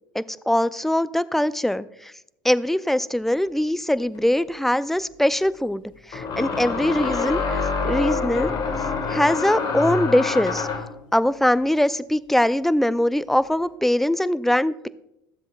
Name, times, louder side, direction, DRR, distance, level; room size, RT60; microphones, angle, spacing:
voice 1, 0.1-2.1 2.4-5.8 6.1-8.5 9.1-10.7 11.1-14.9, left 1 dB, ahead, 16 dB, 0.4 m, -22 dB
sound 1, 4.2-4.3 6.1-11.0, left 4 dB, 40° left, 1.7 m, -26 dB
14.0 x 7.6 x 2.3 m, 0.82 s
hypercardioid pair, 80°, 11 cm